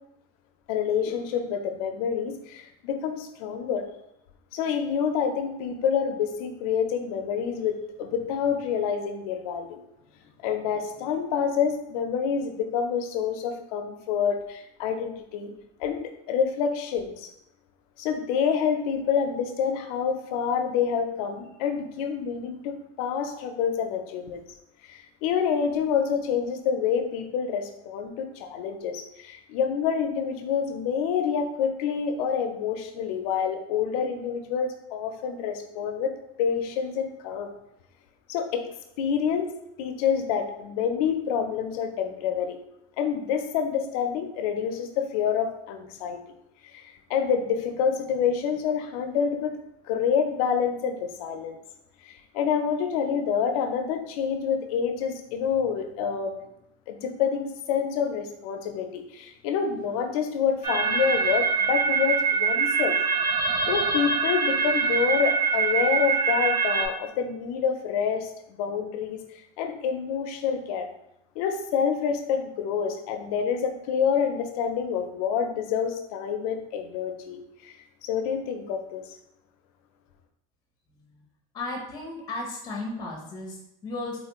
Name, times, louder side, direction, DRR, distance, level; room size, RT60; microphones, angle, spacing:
voice 1, 0.7-3.9 4.5-9.8 10.4-15.5 15.8-17.3 18.0-24.4 24.8-37.5 38.3-38.7 39.0-39.5 39.8-42.6 43.0-46.2 46.6-49.6 49.9-51.6 52.0-56.4 56.9-63.0 63.7-69.2 69.6-70.9 71.4-77.7 78.0-79.0, left 7 dB, 90° left, 6 dB, 0.5 m, -27 dB
sound 1, 60.6-66.9, right 5 dB, 20° right, 0.5 m, -24 dB
voice 2, 81.5-84.2, left 2 dB, 20° left, -1 dB, 0.8 m, -34 dB
3.9 x 2.4 x 2.9 m, 0.80 s
cardioid pair, 165°, 18 cm